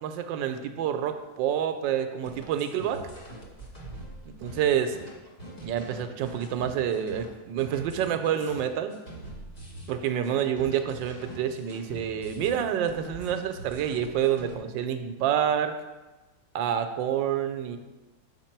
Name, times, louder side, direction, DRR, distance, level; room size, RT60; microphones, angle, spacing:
voice 1, 0.0-3.0 4.4-5.0 5.6-8.9 9.9-15.7 16.5-17.8, right 9 dB, 80° right, 8 dB, 1.3 m, -28 dB
sound 1, 2.2-14.6, right 1 dB, 25° left, 1.1 m, -44 dB
6.7 x 5.9 x 4.4 m, 1.1 s
omnidirectional pair, 2.1 m